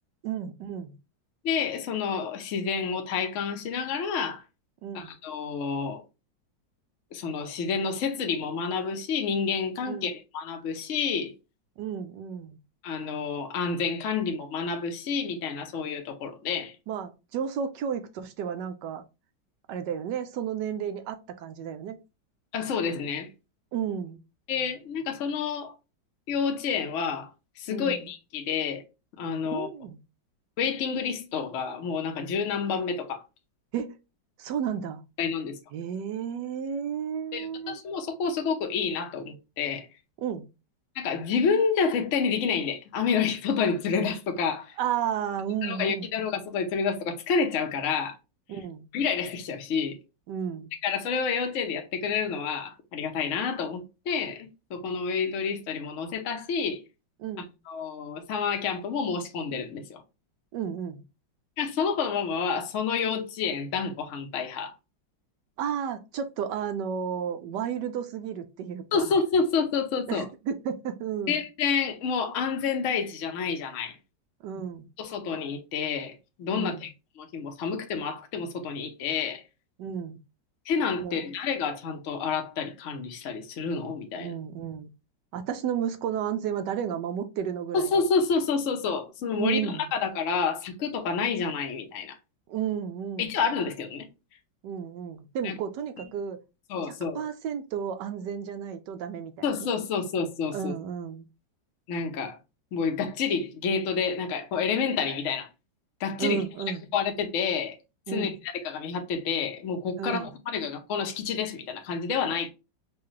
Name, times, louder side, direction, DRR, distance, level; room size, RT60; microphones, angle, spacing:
voice 1, 0.2-0.9 4.8-5.1 9.9-10.1 11.8-12.6 16.9-19.0 19.7-22.0 23.7-24.2 27.7-28.1 29.4-30.0 33.7-34.0 34.4-35.0 35.7-37.8 40.2-40.5 44.8-46.1 48.5-48.9 50.3-50.7 57.2-57.5 60.5-61.0 65.6-69.1 70.1-71.4 74.4-74.9 76.5-76.9 79.8-80.2 81.0-81.3 84.2-84.9 85.3-88.0 89.4-89.9 92.5-93.3 94.6-96.4 97.1-99.3 99.6-99.7 100.5-101.2 106.2-106.8 108.1-108.4 110.0-110.3, right 8 dB, 75° right, 1.1 m, -32 dB
voice 2, 1.4-4.4 4.9-6.0 7.1-11.3 12.8-16.7 22.5-23.3 24.5-25.7 26.3-27.3 27.6-28.8 29.2-29.7 30.6-33.2 35.2-35.6 37.3-39.9 41.0-44.8 45.6-48.2 48.9-50.0 50.8-56.8 57.7-60.0 61.6-64.7 68.9-70.3 71.3-74.0 75.0-76.9 77.2-79.4 80.7-84.3 87.7-92.2 93.2-94.1 95.4-95.6 96.7-97.2 99.4-100.7 101.9-102.4 102.7-105.5 106.0-106.4 106.9-107.8 108.1-108.3 108.6-112.5, left 6 dB, 60° left, 0.9 m, -29 dB
4.6 x 2.3 x 3.1 m
omnidirectional pair, 2.0 m